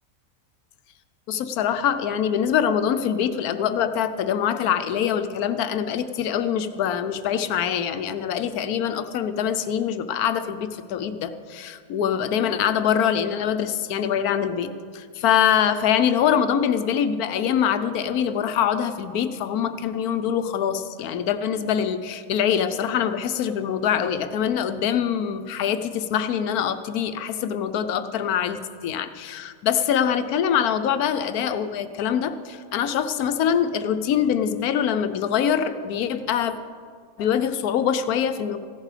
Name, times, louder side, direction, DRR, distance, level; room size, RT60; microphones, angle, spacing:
voice 1, 1.3-36.5 37.2-38.6, left 8 dB, 85° left, 10 dB, 1.2 m, -24 dB
15.5 x 11.0 x 4.9 m, 2.1 s
omnidirectional pair, 1.5 m